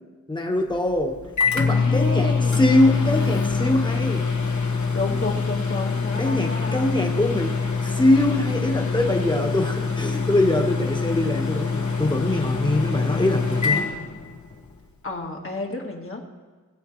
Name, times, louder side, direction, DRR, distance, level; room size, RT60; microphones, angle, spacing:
voice 1, 0.3-1.2 1.5-4.3 6.2-13.9, left 1 dB, 15° left, 2 dB, 1.5 m, -23 dB
Microwave oven, 0.7-14.7, left 5 dB, 65° left, 1.5 m, -25 dB
voice 2, 1.7-2.8 4.9-6.9 15.0-16.2, left 3 dB, 45° left, 1 dB, 1.7 m, -31 dB
20.5 x 8.4 x 3.2 m, 1.3 s
wide cardioid pair, 100°, 31 cm